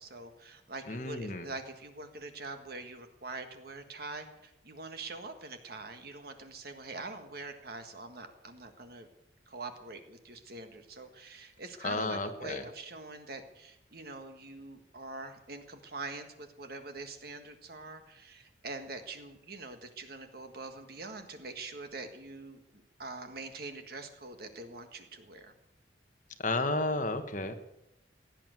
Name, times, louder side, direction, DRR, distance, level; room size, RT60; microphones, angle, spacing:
voice 1, 0.0-9.1 9.5-25.5, right 3 dB, 55° right, 7 dB, 1.7 m, -44 dB
voice 2, 0.9-1.5 11.8-12.6 26.4-27.5, left 2 dB, 45° left, 7 dB, 1.3 m, -32 dB
16.5 x 9.1 x 7.8 m, 0.87 s
head